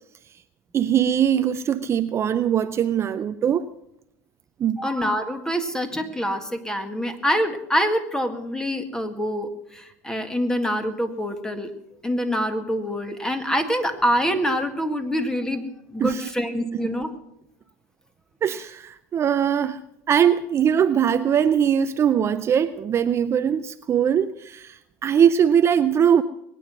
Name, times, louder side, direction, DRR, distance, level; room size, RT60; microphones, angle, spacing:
voice 1, 0.7-3.7 4.6-4.9 16.0-16.3 18.4-19.8 20.1-26.2, right 8 dB, 35° right, 11 dB, 0.5 m, -21 dB
voice 2, 4.8-11.7 12.0-17.2, equal, 5° left, 8 dB, 1.8 m, -25 dB
21.5 x 9.2 x 6.2 m, 0.83 s
hypercardioid pair, 95°, 8 cm